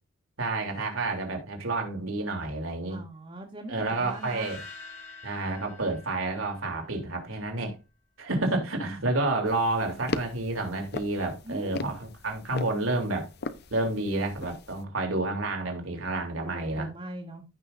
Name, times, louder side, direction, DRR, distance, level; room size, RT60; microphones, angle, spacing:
voice 1, 0.4-3.0 3.7-4.6 5.2-7.8 8.2-13.3 13.7-16.9, right 2 dB, 80° right, 3.2 m, -30 dB
voice 2, 2.9-4.5 8.3-8.9 11.5-11.9 16.3-17.4, right 1 dB, 30° right, 1.9 m, -41 dB
sound 1, 4.0-7.1, left 4 dB, 70° left, 6.0 m, -47 dB
sound 2, 9.5-14.8, left 3 dB, 55° left, 0.8 m, -39 dB
15.5 x 6.2 x 2.6 m
head